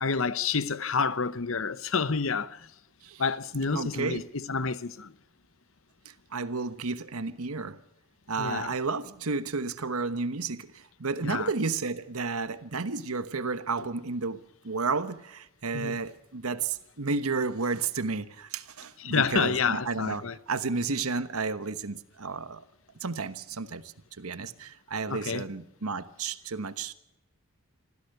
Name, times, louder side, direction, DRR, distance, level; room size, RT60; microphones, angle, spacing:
voice 1, 0.0-2.7 3.2-5.1 8.4-8.8 11.2-11.5 15.7-16.0 19.0-20.4 25.1-25.4, left 5 dB, 70° left, 0.9 m, -29 dB
voice 2, 3.7-4.2 6.3-7.8 8.3-22.6 23.0-23.8 24.2-26.9, right 4 dB, 85° right, 1.2 m, -32 dB
25.5 x 15.5 x 6.8 m
head